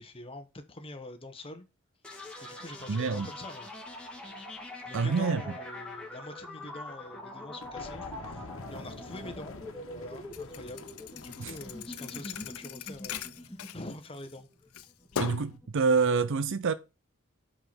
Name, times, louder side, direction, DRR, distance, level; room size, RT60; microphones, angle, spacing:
voice 1, 0.0-1.7 2.1-3.7 4.8-9.6 9.9-14.5, left 2 dB, 25° left, 1.2 m, -45 dB
sound 1, 2.0-15.7, left 1 dB, 5° left, 2.2 m, -44 dB
voice 2, 2.9-3.3 4.9-5.4 11.4-11.5 15.2-16.7, right 5 dB, 60° right, 0.5 m, -27 dB
sound 2, 7.6-12.6, left 2 dB, 65° left, 1.4 m, -47 dB
Thump thud, 10.3-14.4 14.7-15.6, left 7 dB, 85° left, 0.6 m, -39 dB
5.8 x 5.6 x 6.0 m
head